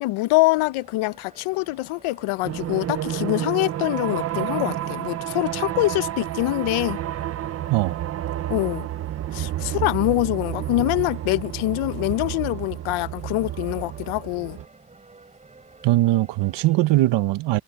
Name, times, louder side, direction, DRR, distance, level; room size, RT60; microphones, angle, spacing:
voice 1, 0.0-7.0 8.5-8.9 9.3-14.6, left 19 dB, 75° left, 0.7 m, -24 dB
sound 1, 0.5-17.0, right 3 dB, 15° right, 5.4 m, -52 dB
sound 2, 2.4-14.7, right 12 dB, 30° right, 0.4 m, -30 dB
voice 2, 7.7-8.0 15.8-17.6, right 17 dB, 60° right, 1.0 m, -20 dB
cardioid pair, 165°, 50 cm